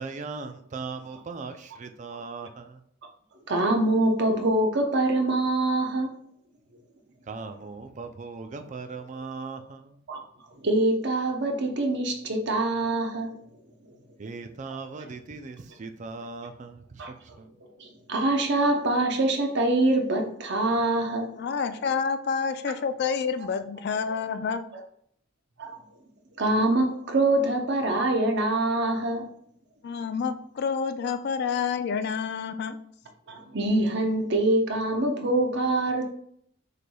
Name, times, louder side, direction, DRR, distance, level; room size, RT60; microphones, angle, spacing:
voice 1, 0.0-2.8 7.3-10.0 14.2-17.5, right 4 dB, 35° right, 7 dB, 0.4 m, -39 dB
voice 2, 3.5-6.1 10.1-10.2 10.6-13.3 17.0-17.1 17.8-21.3 25.6-25.8 26.4-29.2 33.3-36.1, right 2 dB, 60° right, 3 dB, 0.8 m, -24 dB
voice 3, 21.4-24.7 29.8-32.8, left 6 dB, 55° left, 10 dB, 0.3 m, -28 dB
6.5 x 3.3 x 2.3 m, 0.67 s
head